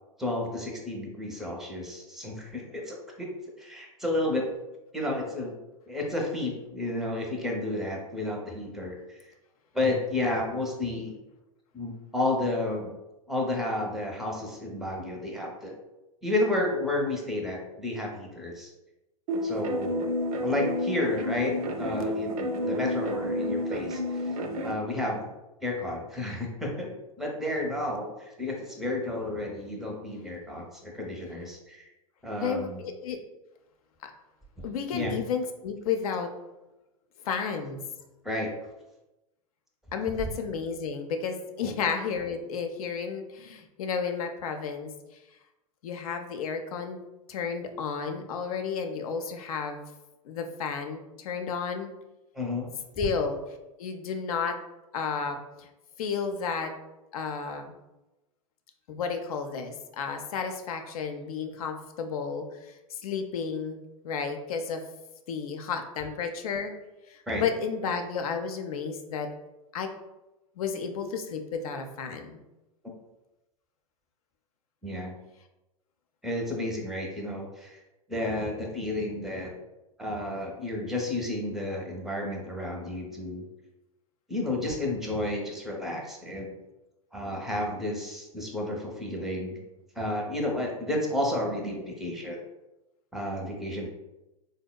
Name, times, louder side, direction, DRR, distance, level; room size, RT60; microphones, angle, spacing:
voice 1, 0.2-3.3 3.6-4.5 4.9-5.5 5.9-9.2 9.7-11.1 11.7-12.9 13.3-15.8 16.2-18.7 19.4-20.1 20.4-24.3 24.6-25.3 25.6-31.9 32.2-32.8 34.9-35.1 38.2-38.5 40.2-40.3 41.6-41.8 52.3-52.7 67.3-67.4 74.8-75.2 76.2-77.8 78.1-79.5 80.0-83.5 84.3-86.5 87.1-89.6 90.0-92.4 93.1-93.9, left 1 dB, ahead, 0 dB, 0.5 m, -31 dB
sound 1, 19.3-24.7, left 1 dB, 70° right, 0.4 m, -30 dB
voice 2, 32.4-33.2 34.0-34.1 34.6-36.3 37.2-37.8 39.9-44.9 45.8-47.0 47.3-49.9 50.2-51.9 53.0-53.4 53.8-54.6 54.9-55.7 56.0-56.7 57.1-57.7 58.9-63.8 64.0-64.8 65.3-66.7 67.1-69.3 69.7-69.9 70.6-72.4, left 6 dB, 70° left, 6 dB, 0.4 m, -32 dB
3.7 x 2.1 x 2.2 m, 1.0 s
hypercardioid pair, 100°, 19 cm